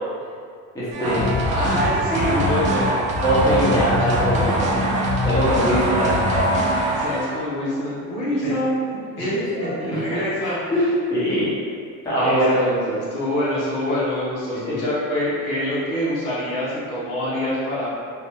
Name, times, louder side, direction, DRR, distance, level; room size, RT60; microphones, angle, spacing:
voice 1, 0.7-1.3 2.3-2.4 3.2-4.9 5.2-6.6 8.4-8.5 9.2-10.8 11.1-11.5 12.0-12.5 12.9-13.0 14.6-14.8, equal, 10° left, -11 dB, 0.8 m, -23 dB
sound 1, 0.9-7.4, equal, 25° right, 0.4 m, -22 dB
voice 2, 1.5-2.9 4.0-4.1 6.9-9.4 9.8-10.9 12.1-17.9, left 1 dB, 75° left, -7 dB, 1.2 m, -26 dB
3.6 x 2.5 x 3.0 m, 2.2 s
cardioid pair, 170°, 32 cm